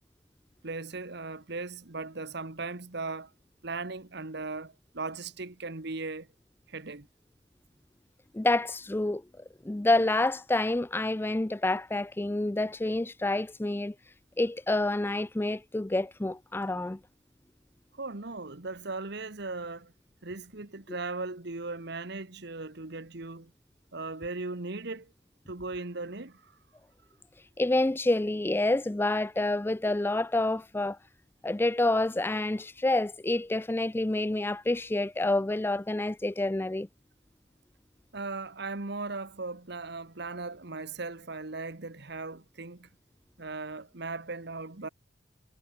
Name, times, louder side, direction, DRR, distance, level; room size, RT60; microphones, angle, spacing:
voice 1, 0.6-3.3 3.6-6.3 6.7-7.1 17.9-19.9 20.2-23.5 23.9-25.1 25.5-26.5 38.1-42.9 43.4-44.9, right 3 dB, 60° right, 1.5 m, -38 dB
voice 2, 8.3-9.2 9.6-13.9 14.4-17.0 27.6-31.0 31.4-36.9, left 2 dB, 10° left, 0.4 m, -28 dB
head